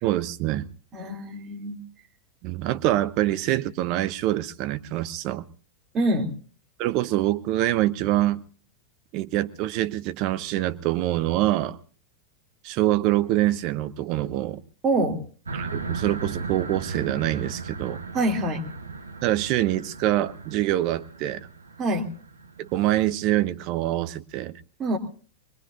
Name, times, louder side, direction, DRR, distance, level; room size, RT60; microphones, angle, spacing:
voice 1, 0.0-0.7 2.4-5.4 6.8-8.4 9.1-11.8 12.6-14.6 15.5-18.0 19.2-21.5 22.6-24.6, right 14 dB, 40° right, 13 dB, 0.8 m, -25 dB
voice 2, 0.9-1.8 5.9-6.3 14.8-15.2 18.1-18.6 21.8-22.1 24.8-25.0, right 1 dB, 25° right, 0 dB, 3.0 m, -25 dB
sound 1, 15.4-22.9, right 4 dB, 75° right, 1.1 m, -37 dB
24.5 x 21.0 x 2.7 m, 0.42 s
figure-of-eight pair, 90°, 0 cm